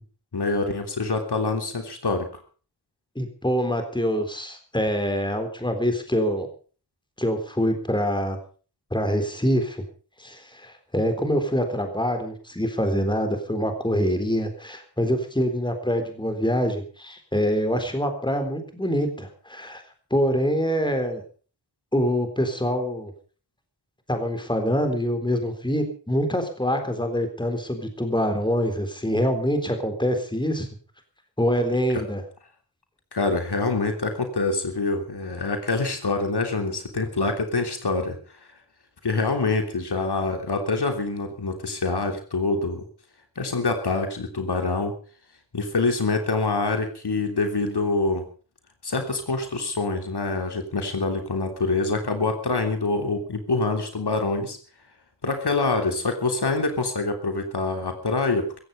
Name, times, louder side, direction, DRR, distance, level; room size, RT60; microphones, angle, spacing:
voice 1, 0.3-2.4 31.9-32.0 33.1-38.2 39.0-42.8 43.3-44.9 45.5-48.2 48.8-54.6 55.2-58.6, left 3 dB, 65° left, 5 dB, 3.3 m, -25 dB
voice 2, 3.2-6.5 7.2-8.4 8.9-9.8 10.2-19.8 20.1-21.2 21.9-23.1 24.1-30.7 31.4-32.2, equal, 10° left, 6 dB, 3.8 m, -25 dB
16.0 x 15.5 x 5.4 m, 0.40 s
wide cardioid pair, 90°, 42 cm